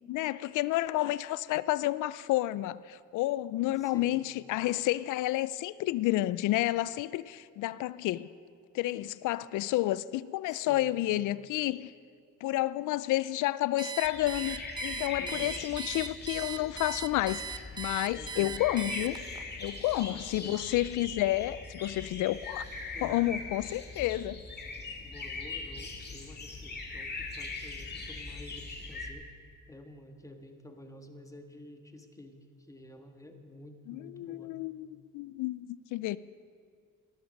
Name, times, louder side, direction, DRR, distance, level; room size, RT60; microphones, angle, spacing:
voice 1, 0.1-8.3 8.7-11.9 12.4-19.2 19.6-22.6 23.0-24.4 33.9-34.9 35.1-36.2, left 16 dB, 85° left, 0.5 m, -30 dB
voice 2, 3.7-4.2 10.5-11.0 15.2-15.6 18.1-18.7 20.1-20.7 22.9-23.2 25.0-29.3 29.7-34.5, left 1 dB, 10° left, 1.6 m, -50 dB
Alarm, 13.8-19.4, right 6 dB, 15° right, 0.7 m, -39 dB
sound 1, 14.0-29.1, left 3 dB, 35° left, 2.2 m, -41 dB
18.5 x 12.0 x 5.3 m
cardioid pair, 90°, 30 cm